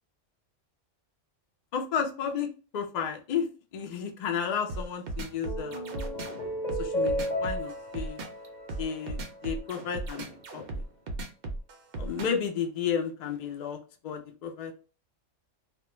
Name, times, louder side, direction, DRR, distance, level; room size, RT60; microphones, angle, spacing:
voice 1, 1.7-3.5 3.7-5.9 6.8-8.2 8.8-10.8 12.0-13.8 14.0-14.7, left 7 dB, 70° left, 4 dB, 0.4 m, -32 dB
sound 1, 4.7-12.5, right 2 dB, 60° right, 0.7 m, -36 dB
sound 2, 5.2-9.8, equal, 40° left, 1.1 m, -34 dB
2.2 x 2.2 x 2.9 m, 0.37 s
omnidirectional pair, 1.3 m